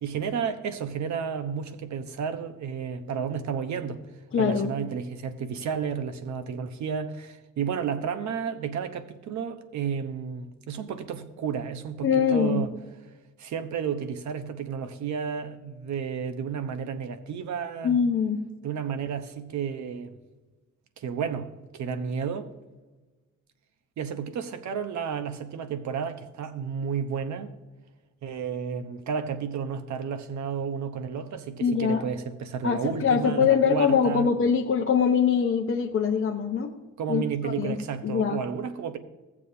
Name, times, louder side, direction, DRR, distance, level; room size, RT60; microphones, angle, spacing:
voice 1, 0.0-4.0 4.4-12.7 13.4-18.0 18.6-20.2 21.0-22.5 24.0-27.5 28.2-34.3 37.0-39.0, right 7 dB, 70° right, 1.0 m, -32 dB
voice 2, 4.3-4.7 12.0-12.6 17.8-18.4 31.6-32.1 32.6-36.7 37.1-37.8 38.0-38.4, left 7 dB, 45° left, 0.8 m, -23 dB
15.5 x 7.3 x 2.8 m
cardioid pair, 90°, 30 cm